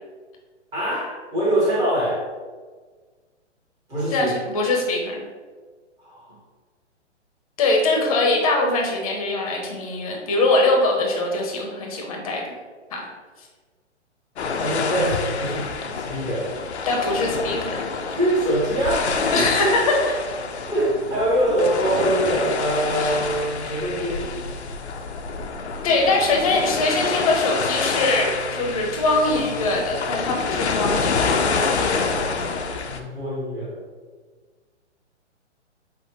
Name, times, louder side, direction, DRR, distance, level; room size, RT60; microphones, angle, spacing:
voice 1, 0.7-2.2 3.9-4.3 6.0-6.3 14.6-16.5 18.1-19.4 20.6-24.3 32.5-33.8, right 1 dB, 10° right, -7 dB, 0.8 m, -24 dB
voice 2, 4.1-5.2 7.6-12.5 12.9-13.1 13.4-13.5 16.8-17.8 19.3-20.2 23.0-23.2 25.8-31.2, left 2 dB, 30° left, 0 dB, 0.7 m, -22 dB
sound 1, 14.4-33.0, left 4 dB, 65° left, 0.5 m, -27 dB
5.4 x 2.1 x 3.1 m, 1.4 s
figure-of-eight pair, 125°, 36 cm